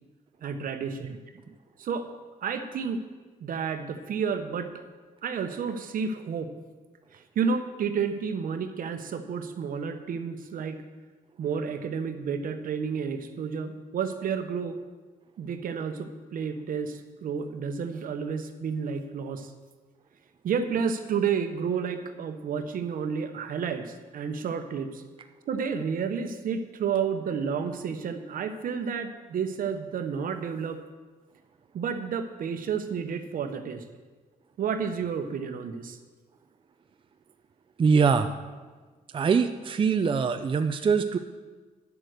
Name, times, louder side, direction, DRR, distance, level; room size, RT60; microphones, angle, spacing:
voice 1, 0.4-1.2 1.8-2.1 2.4-3.0 3.4-4.7 5.2-6.5 7.1-10.8 11.4-14.8 15.4-19.5 20.4-25.0 25.5-30.8 31.7-33.8 34.6-36.0, right 6 dB, 70° right, 8 dB, 1.1 m, -31 dB
voice 2, 37.8-38.3 39.1-41.2, right 5 dB, 35° right, 7 dB, 0.5 m, -23 dB
10.0 x 7.8 x 6.6 m, 1.4 s
cardioid pair, 95°, 15 cm